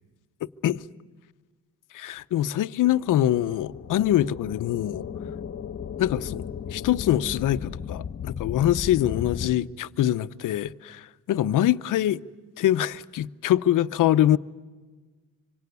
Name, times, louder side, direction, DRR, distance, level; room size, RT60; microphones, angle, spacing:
voice 1, 1.9-5.0 6.0-12.2 12.6-14.4, left 12 dB, 65° left, 0.8 m, -24 dB
sound 1, 2.8-9.6, left 7 dB, 40° left, 1.4 m, -36 dB
25.5 x 24.5 x 9.5 m
cardioid pair, 130°, 34 cm